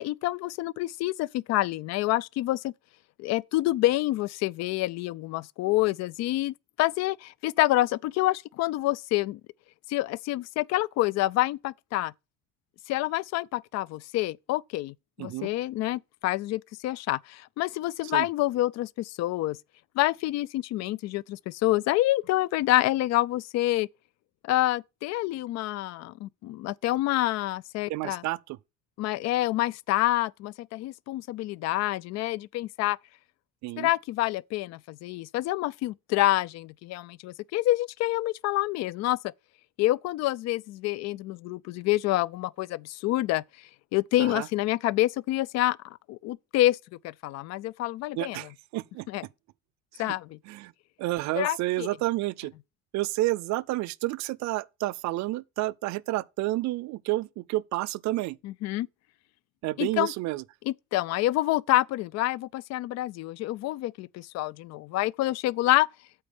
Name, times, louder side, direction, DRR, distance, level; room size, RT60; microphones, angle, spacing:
voice 1, 0.0-2.7 3.2-9.4 9.9-12.1 12.9-19.6 20.0-23.9 24.4-28.2 29.0-33.0 33.8-39.3 39.8-43.4 43.9-46.8 47.0-48.4 49.1-49.2 50.0-50.4 51.4-51.9 58.4-58.9 59.8-60.1 60.7-65.9, left 16 dB, 60° left, 0.4 m, -27 dB
voice 2, 15.2-15.5 18.1-18.3 27.9-28.6 33.6-33.9 44.2-44.5 48.2-49.1 49.9-50.1 50.5-50.7 51.0-52.5 52.9-58.4 59.6-60.4, right 18 dB, 65° right, 0.6 m, -30 dB
8.5 x 4.5 x 7.0 m
cardioid pair, 140°, 31 cm